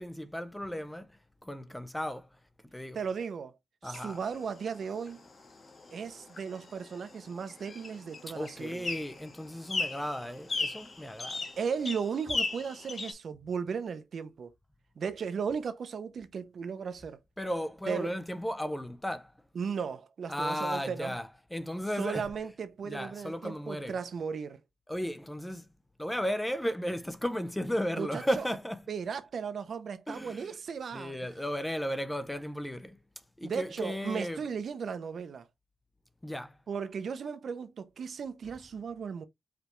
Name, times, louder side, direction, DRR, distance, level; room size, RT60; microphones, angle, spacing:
voice 1, 0.0-2.3 2.7-3.0 3.8-4.2 8.3-11.5 17.4-19.3 20.3-22.3 22.8-24.0 24.9-25.7 26.0-28.8 30.1-30.5 30.9-33.0 33.4-34.4 36.2-36.6, equal, 5° left, 0.4 m, -35 dB
voice 2, 2.9-3.5 3.8-5.2 5.9-8.9 11.6-14.5 15.0-17.2 17.9-18.1 19.5-21.2 22.0-24.6 28.0-28.4 28.9-31.2 33.4-35.5 36.7-39.2, right 6 dB, 55° right, 0.6 m, -36 dB
sound 1, 3.9-13.1, left 3 dB, 35° left, 1.1 m, -38 dB
5.0 x 3.2 x 3.1 m
wide cardioid pair, 165°, 0 cm